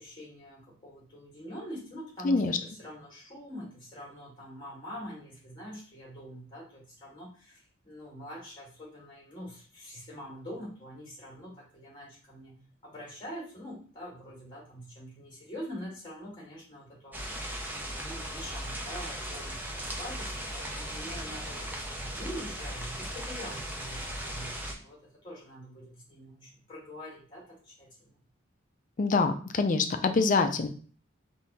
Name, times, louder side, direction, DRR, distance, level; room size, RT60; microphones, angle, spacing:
voice 1, 0.0-12.6 12.8-28.2, equal, 20° left, -4 dB, 1.9 m, -44 dB
voice 2, 2.2-2.6 29.0-30.7, left 4 dB, 40° left, 7 dB, 0.4 m, -25 dB
sound 1, 17.1-24.7, equal, 10° right, 0.6 m, -37 dB
3.7 x 2.7 x 4.1 m, 0.42 s
head